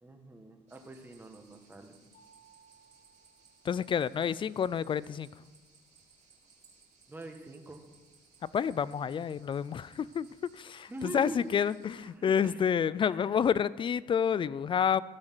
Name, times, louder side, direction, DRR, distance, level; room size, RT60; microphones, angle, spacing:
voice 1, 0.0-2.0 7.1-7.8 10.9-11.5 12.0-12.6 13.0-13.4, right 2 dB, 10° right, 4 dB, 1.3 m, -44 dB
sound 1, 0.7-12.1, right 5 dB, 40° right, 3.4 m, -63 dB
Mallet percussion, 2.1-4.7, right 5 dB, 65° left, 2.6 m, -64 dB
voice 2, 3.7-5.3 8.5-10.3 10.5-15.0, left 7 dB, 30° left, 19 dB, 0.3 m, -29 dB
14.5 x 6.3 x 6.2 m, 1.3 s
cardioid pair, 110°, 17 cm